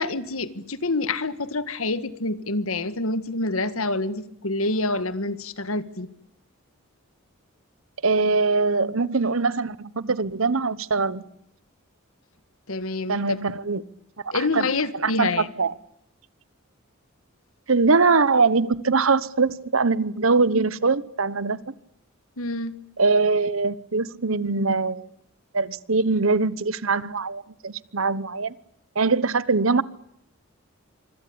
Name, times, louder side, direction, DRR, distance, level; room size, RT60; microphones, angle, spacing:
voice 1, 0.0-6.1 12.7-13.4 14.3-15.5 22.4-22.8, left 2 dB, 80° left, 1.7 m, -27 dB
voice 2, 8.0-11.2 13.1-13.8 14.3-14.7 14.9-15.7 17.7-21.7 23.0-25.1 25.5-28.5 28.9-29.8, right 4 dB, 70° right, 1.1 m, -22 dB
25.5 x 25.0 x 8.7 m
head